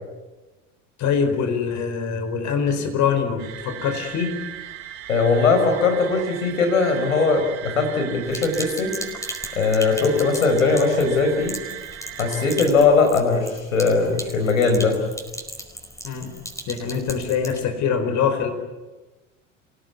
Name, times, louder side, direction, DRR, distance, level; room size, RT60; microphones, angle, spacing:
voice 1, 1.0-4.3 16.0-16.3 16.7-18.5, left 6 dB, 50° left, 8 dB, 4.7 m, -24 dB
sound 1, 3.4-12.7, right 11 dB, 60° right, 3.5 m, -37 dB
voice 2, 5.1-9.0 9.5-11.5 12.2-15.0, left 4 dB, 90° left, 5 dB, 5.3 m, -20 dB
Sink (filling or washing), 8.3-17.6, equal, 10° left, 4.9 m, -37 dB
27.5 x 17.5 x 9.5 m, 1.2 s
hypercardioid pair, 80°, 38 cm